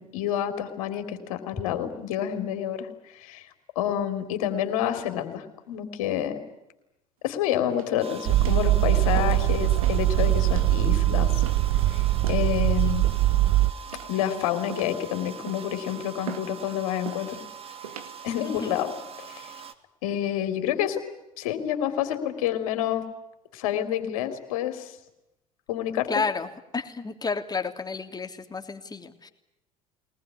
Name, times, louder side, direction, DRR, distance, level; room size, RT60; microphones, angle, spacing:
voice 1, 0.0-3.5 3.8-6.4 7.2-11.3 11.9-13.1 14.1-17.4 18.2-18.9 19.2-19.5 20.0-21.0 21.4-23.0 23.5-25.0 25.7-26.1, left 10 dB, 75° left, 7 dB, 3.4 m, -28 dB
sound 1, 7.7-8.1 8.4-8.7 9.1-9.5 9.8-10.1 10.5-10.7 11.4-11.7 12.2-12.5 13.0-13.5 13.9-14.3 14.7-15.0 15.5-15.8 16.3-16.5 17.0-17.3 17.8-18.1 18.7-19.1, right 8 dB, 85° right, 2.2 m, -40 dB
sound 2, 8.0-19.7, right 7 dB, 35° right, 2.6 m, -42 dB
sound 3, 8.3-13.7, right 15 dB, 65° right, 1.1 m, -22 dB
voice 2, 18.4-18.8 26.1-29.3, left 4 dB, 20° left, 6 dB, 3.2 m, -31 dB
23.0 x 19.5 x 9.8 m, 0.86 s
hypercardioid pair, 70°, 18 cm